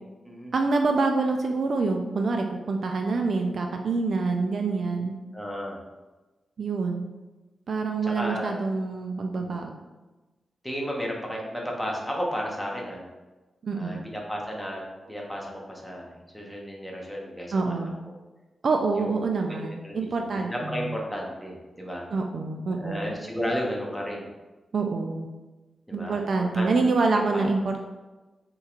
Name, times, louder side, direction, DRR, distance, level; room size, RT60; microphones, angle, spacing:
voice 1, 0.5-5.1 6.6-7.1 7.7-9.7 13.6-14.0 17.5-17.9 18.6-21.0 22.1-23.1 24.7-25.3 25.9-27.8, right 3 dB, 50° right, 3 dB, 0.3 m, -26 dB
voice 2, 5.3-5.7 8.0-8.6 9.3-9.6 10.6-13.0 13.7-14.8 15.1-17.8 18.9-19.1 19.5-20.1 20.3-22.1 22.7-24.3 25.9-26.2 26.5-27.4, equal, ahead, -2 dB, 0.7 m, -33 dB
6.4 x 3.0 x 2.4 m, 1.2 s
wide cardioid pair, 180°, 0 cm